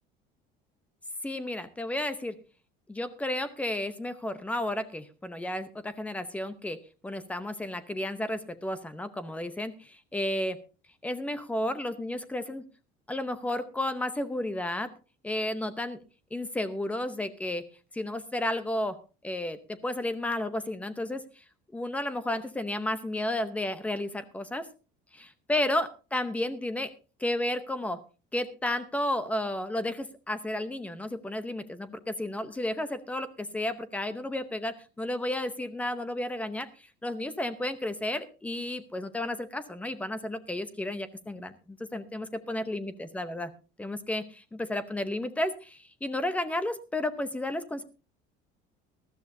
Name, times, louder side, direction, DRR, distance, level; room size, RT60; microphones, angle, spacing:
voice 1, 1.2-2.4 2.9-10.6 11.0-12.6 13.1-14.9 15.2-16.0 16.3-17.7 17.9-19.0 19.2-21.4 21.7-24.7 25.1-26.9 27.2-28.0 28.3-43.5 43.8-47.8, left 1 dB, 5° left, 12 dB, 0.7 m, -32 dB
19.5 x 13.0 x 2.6 m, 0.33 s
cardioid pair, 175°, 20 cm